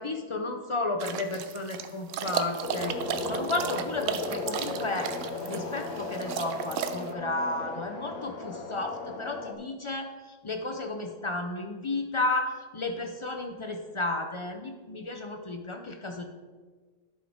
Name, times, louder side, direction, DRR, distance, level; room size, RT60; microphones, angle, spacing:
voice 1, 0.0-5.1 5.4-16.2, left 2 dB, 55° left, 4 dB, 0.3 m, -33 dB
sound 1, 1.0-7.1, right 8 dB, 70° right, 0.9 m, -34 dB
sound 2, 2.6-9.5, left 3 dB, 75° left, 1.2 m, -36 dB
11.0 x 5.5 x 3.6 m, 1.4 s
omnidirectional pair, 1.4 m